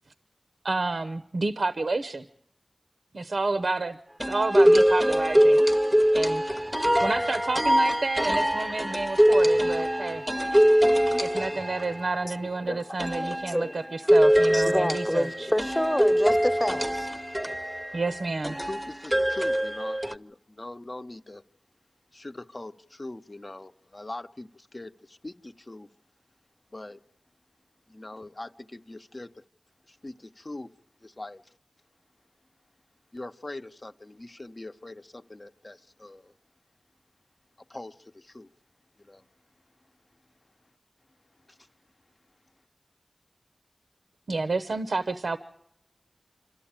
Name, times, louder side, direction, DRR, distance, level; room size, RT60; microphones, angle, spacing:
voice 1, 0.6-2.3 3.1-5.6 6.1-6.4 7.0-10.2 11.2-15.5 17.9-18.6 44.3-45.4, right 3 dB, 75° right, 0.8 m, -30 dB
sound 1, 4.2-12.4 13.0-20.1, equal, 10° right, 0.8 m, -23 dB
voice 2, 11.0-11.4 12.2-12.8 13.1-13.9 14.5-17.1, equal, 10° left, 1.0 m, -29 dB
voice 3, 18.6-21.4 22.1-25.9 26.7-27.0 27.9-29.4 29.9-30.7 31.0-31.5 33.1-36.3 37.7-38.5 39.0-39.2 41.5-41.7, left 2 dB, 40° left, 0.8 m, -42 dB
26.5 x 13.0 x 8.8 m
wide cardioid pair, 55°, 0 cm